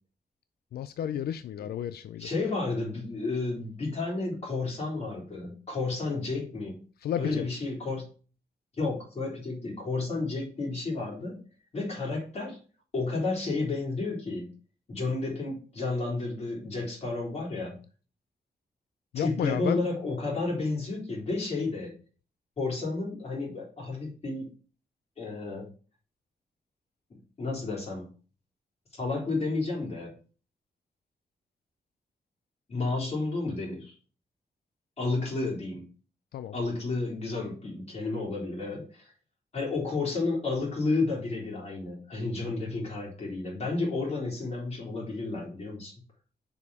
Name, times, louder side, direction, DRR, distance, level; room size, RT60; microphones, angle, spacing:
voice 1, 0.7-2.3 7.0-7.5 19.1-19.8 36.3-36.6, left 10 dB, 85° left, 0.4 m, -32 dB
voice 2, 2.2-6.8 7.2-8.1 8.8-11.4 11.7-12.6 12.9-14.5 14.9-17.8 19.2-21.9 22.6-24.5 25.2-25.7 27.4-28.1 29.0-30.1 32.7-34.0 35.0-35.9 36.5-39.1 39.5-45.9, left 3 dB, 40° left, 3.6 m, -31 dB
6.8 x 5.0 x 4.8 m
wide cardioid pair, 140°, 16 cm